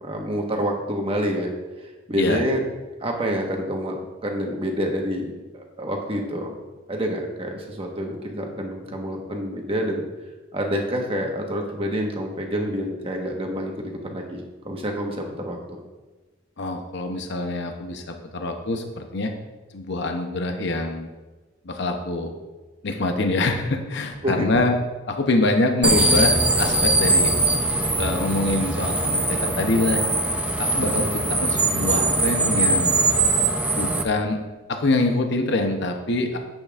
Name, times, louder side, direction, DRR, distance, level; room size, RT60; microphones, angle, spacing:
voice 1, 0.0-1.5 2.1-2.6 3.0-6.5 6.9-10.0 10.5-13.7 14.0-15.6 24.2-24.5, equal, 30° right, 1 dB, 1.2 m, -27 dB
voice 2, 16.6-19.3 19.7-21.1 21.6-22.3 22.8-24.7 25.1-27.3 28.0-30.0 30.6-32.9 33.7-34.4 34.7-36.4, left 2 dB, 60° left, 4 dB, 0.7 m, -25 dB
sound 1, 25.8-34.0, right 2 dB, 5° right, 0.5 m, -21 dB
10.5 x 8.1 x 2.4 m, 1.2 s
head